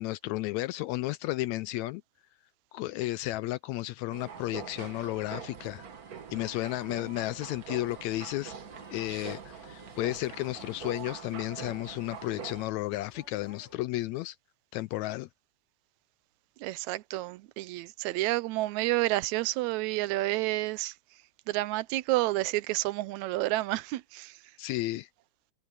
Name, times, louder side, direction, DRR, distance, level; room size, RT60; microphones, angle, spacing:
voice 1, 0.0-2.0 2.7-5.8 6.3-8.5 8.9-14.4 14.7-15.3 24.6-25.1, left 17 dB, 80° left, 1.8 m, -33 dB
sound 1, 4.1-12.7, right 6 dB, 45° right, 1.4 m, -44 dB
sound 2, 8.6-13.8, left 1 dB, 20° left, 7.9 m, -57 dB
voice 2, 16.6-20.9 21.5-24.4, right 18 dB, 80° right, 1.9 m, -30 dB
omnidirectional pair, 3.4 m